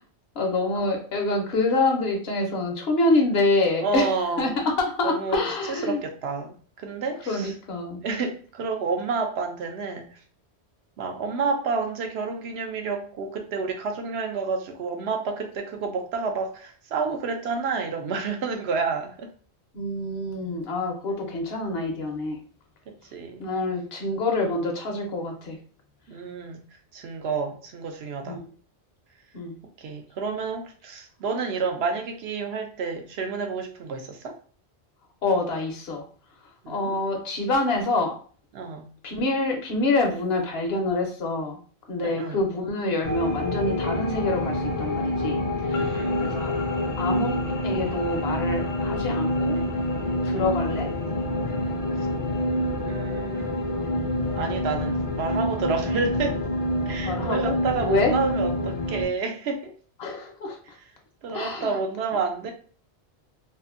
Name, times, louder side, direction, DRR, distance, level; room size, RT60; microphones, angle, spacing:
voice 1, 0.3-4.1 4.4-4.5 4.8-6.0 7.3-8.0 19.7-22.4 23.4-25.6 28.3-28.4 29.3-29.6 35.2-36.0 36.7-38.2 39.0-41.6 41.9-45.4 45.6-46.5 47.0-49.6 50.2-50.9 57.0-57.5 57.8-58.1 60.0-60.6 61.3-61.8, left 2 dB, 65° left, 3 dB, 0.9 m, -26 dB
voice 2, 3.8-4.6 5.0-7.5 8.0-10.2 11.0-19.3 22.9-23.5 26.1-26.6 26.9-28.4 29.8-34.4 36.6-37.0 38.5-38.9 42.0-42.4 45.7-46.2 50.3-50.5 51.9-52.1 52.8-53.7 54.4-56.4 56.9-59.7 61.2-62.5, right 4 dB, 70° right, 4 dB, 0.8 m, -30 dB
sound 1, 43.0-59.1, left 1 dB, 45° left, 0.5 m, -27 dB
2.7 x 2.5 x 2.5 m, 0.42 s
omnidirectional pair, 1.1 m